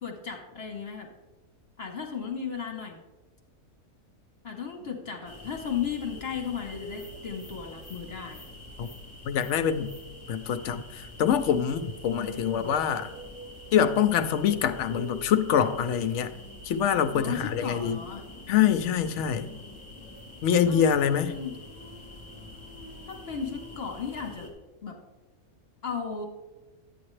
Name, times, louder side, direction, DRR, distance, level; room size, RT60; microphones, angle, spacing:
voice 1, 0.0-1.1 1.8-3.0 4.4-8.5 12.2-12.7 17.2-18.2 20.7-21.6 23.1-24.5 24.8-25.0 25.8-26.2, left 7 dB, 45° left, 2 dB, 1.1 m, -35 dB
sound 1, 5.2-24.5, left 1 dB, 10° left, 2.7 m, -45 dB
voice 2, 9.3-9.9 10.3-13.1 13.7-16.3 16.7-18.0 18.5-19.5 20.4-21.3, left 8 dB, 65° left, 9 dB, 0.8 m, -25 dB
sound 2, 12.0-16.6, right 3 dB, 55° right, 3.6 m, -47 dB
11.5 x 8.6 x 3.2 m, 1.2 s
omnidirectional pair, 1.6 m